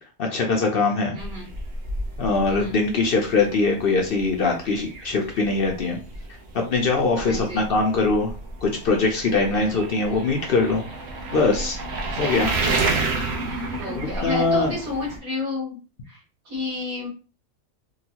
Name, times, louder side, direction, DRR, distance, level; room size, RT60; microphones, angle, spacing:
voice 1, 0.2-1.2 2.2-6.0 6.5-8.3 8.6-10.8 11.3-11.8 12.2-12.5 13.9-14.8, left 3 dB, 55° left, 1 dB, 0.7 m, -22 dB
voice 2, 1.1-1.5 2.5-2.8 7.2-7.7 9.5-9.8 12.2-12.6 13.8-15.8 16.1-16.2 16.5-17.1, left 2 dB, 85° right, -8 dB, 1.9 m, -31 dB
sound 1, 1.2-15.2, right 3 dB, 55° right, 1.0 m, -31 dB
3.8 x 2.3 x 2.8 m, 0.35 s
omnidirectional pair, 1.4 m